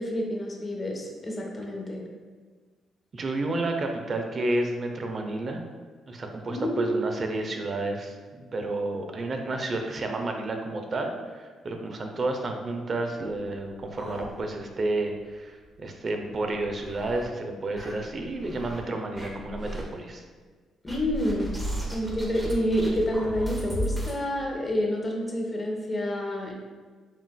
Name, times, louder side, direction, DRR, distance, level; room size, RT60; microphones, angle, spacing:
voice 1, 0.0-2.0 6.5-7.1 20.8-21.5 21.9-26.5, equal, 25° left, 0 dB, 0.9 m, -28 dB
voice 2, 3.1-5.6 6.1-20.2, right 2 dB, 40° right, 4 dB, 0.6 m, -31 dB
sound 1, 14.0-14.8 15.2-15.3 15.6-15.7 16.3-17.2 17.7-18.8 19.1-19.8 20.9-24.2, right 1 dB, 5° right, 0.9 m, -35 dB
7.1 x 2.4 x 2.2 m, 1.4 s
cardioid pair, 90°, 0 cm